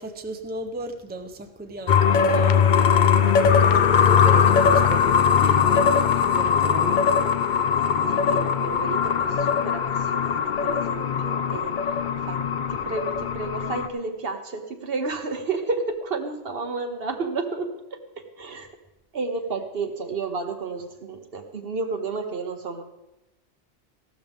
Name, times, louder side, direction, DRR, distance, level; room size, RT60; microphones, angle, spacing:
voice 1, 0.0-2.7 3.6-5.9 6.1-7.0, right 1 dB, 10° right, 5 dB, 0.7 m, -35 dB
sound 1, 1.9-13.9, left 7 dB, 50° left, 0.6 m, -20 dB
voice 2, 8.1-11.7 12.3-12.4 12.7-18.0 18.4-18.7 19.1-22.8, right 4 dB, 55° right, 6 dB, 1.2 m, -31 dB
15.0 x 12.0 x 3.5 m, 0.98 s
omnidirectional pair, 1.2 m